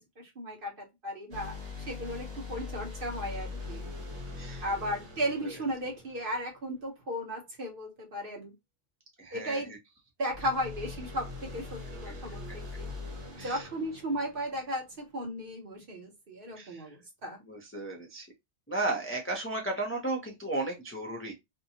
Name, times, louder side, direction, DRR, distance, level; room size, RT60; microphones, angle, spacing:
voice 1, 0.0-1.6 1.9-3.9 4.6-8.5 9.3-9.7 10.2-12.9 13.4-17.4, equal, 50° right, 1.0 m, -35 dB
sound 1, 1.3-6.8 10.3-15.0, left 3 dB, 70° right, 1.2 m, -42 dB
voice 2, 9.2-9.8 13.3-13.7 16.5-16.9 17.5-18.3 18.7-21.3, right 2 dB, 15° left, 0.4 m, -34 dB
2.7 x 2.2 x 2.7 m
omnidirectional pair, 1.2 m